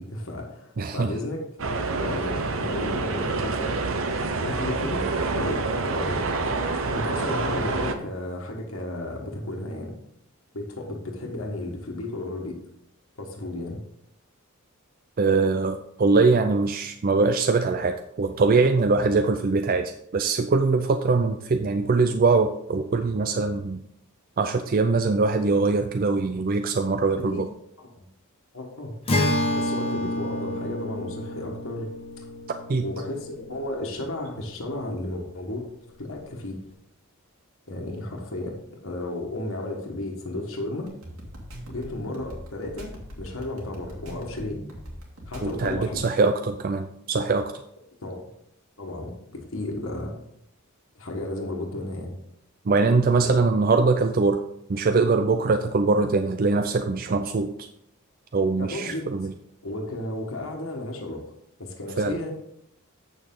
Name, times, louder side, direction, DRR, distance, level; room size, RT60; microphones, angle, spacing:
voice 1, 0.0-1.4 2.0-3.9 4.4-5.0 5.3-6.2 6.9-9.9 10.5-12.6 13.2-13.8 27.2-27.4 27.8-28.0 28.5-28.9 29.5-31.9 32.2-32.3 32.8-35.7 36.0-36.6 37.7-40.9 41.7-42.9 43.2-44.6 45.3-46.1 48.0-48.2 48.8-50.1 50.9-52.1 53.2-53.4 58.6-59.1 59.6-61.3 61.6-62.3, left 1 dB, 65° left, 1 dB, 1.5 m, -33 dB
voice 2, 0.8-1.1 15.2-23.8 24.4-27.5 32.7-32.9 45.4-47.5 52.7-54.4 54.7-57.7 58.3-59.3 62.0-62.2, right 3 dB, 40° right, 7 dB, 0.4 m, -22 dB
sound 1, 1.6-7.9, right 3 dB, 65° right, 0.8 m, -27 dB
Acoustic guitar, 29.1-34.5, equal, 25° left, 1.2 m, -29 dB
sound 2, 40.9-46.0, equal, 85° right, 2.2 m, -41 dB
8.3 x 6.9 x 3.8 m, 0.75 s
head